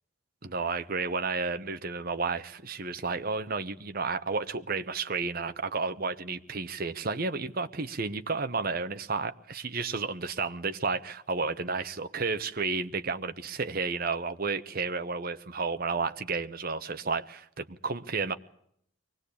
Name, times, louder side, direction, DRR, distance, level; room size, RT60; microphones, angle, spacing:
voice 1, 0.4-18.3, right 4 dB, 45° right, 1.0 m, -32 dB
23.5 x 18.5 x 8.6 m
head